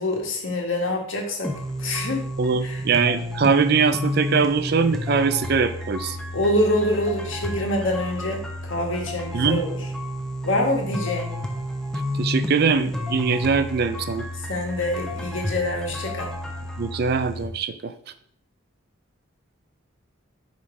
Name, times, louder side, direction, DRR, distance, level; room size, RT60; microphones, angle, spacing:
voice 1, 0.0-1.5 1.8-2.3 2.6-2.8 6.3-9.9 10.4-11.3 14.4-16.3, left 1 dB, 65° left, 1 dB, 1.6 m, -25 dB
sound 1, 1.4-17.4, left 1 dB, 5° left, 0.7 m, -31 dB
voice 2, 2.4-6.2 9.3-9.6 12.1-14.3 16.8-17.9, right 5 dB, 50° right, 11 dB, 0.4 m, -22 dB
5.2 x 5.1 x 4.7 m, 0.65 s
head